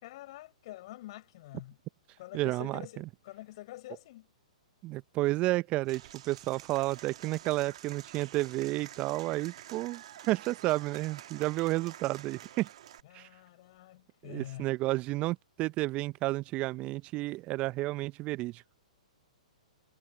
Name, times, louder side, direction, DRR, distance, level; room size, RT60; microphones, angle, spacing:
voice 1, 0.0-1.8 2.2-4.3 13.0-14.8, left 17 dB, 50° left, 6.1 m, -47 dB
voice 2, 2.3-2.8 4.8-12.7 13.1-13.3 14.2-18.6, right 19 dB, 30° right, 0.7 m, -31 dB
Applause / Crowd, 5.9-13.0, right 11 dB, 55° right, 2.0 m, -49 dB
figure-of-eight pair, 115°, 4 cm